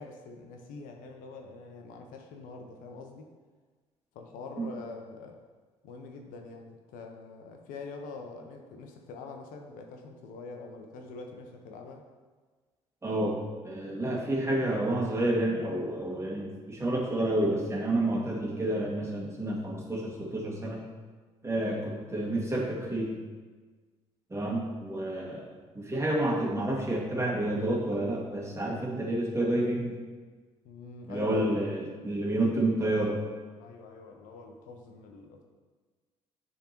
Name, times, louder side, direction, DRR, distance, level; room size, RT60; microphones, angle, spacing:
voice 1, 0.0-3.3 4.1-5.4 5.8-12.0 30.6-31.5 33.6-35.4, left 3 dB, 65° left, 4 dB, 0.7 m, -44 dB
voice 2, 13.0-20.9 21.4-23.2 24.3-25.5 25.7-30.0 31.1-33.2, right 1 dB, 20° right, -3 dB, 1.9 m, -29 dB
10.0 x 3.7 x 2.9 m, 1.4 s
hypercardioid pair, 50°, 15 cm